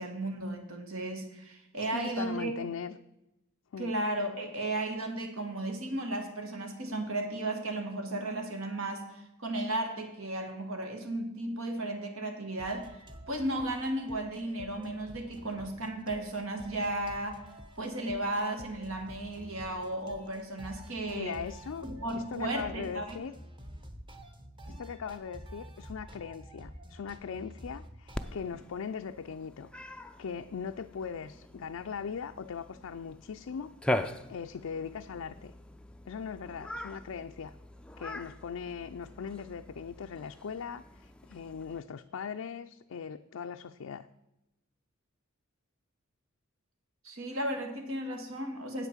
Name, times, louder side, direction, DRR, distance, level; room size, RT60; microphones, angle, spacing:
voice 1, 0.0-2.5 3.8-13.0 13.3-17.4 17.8-21.4 21.8-23.2 24.7-24.8 47.0-48.9, right 1 dB, 75° right, 4 dB, 1.7 m, -34 dB
voice 2, 1.9-3.0 3.7-3.9 21.1-21.9 22.1-23.3 24.7-29.7 30.2-35.5 36.1-37.5 38.0-44.1, left 6 dB, 80° left, 6 dB, 0.4 m, -40 dB
sound 1, 12.6-28.3, equal, 25° right, 1.0 m, -49 dB
Cat, 28.1-41.8, left 1 dB, 5° left, 0.4 m, -41 dB
8.7 x 8.1 x 7.2 m, 0.93 s
head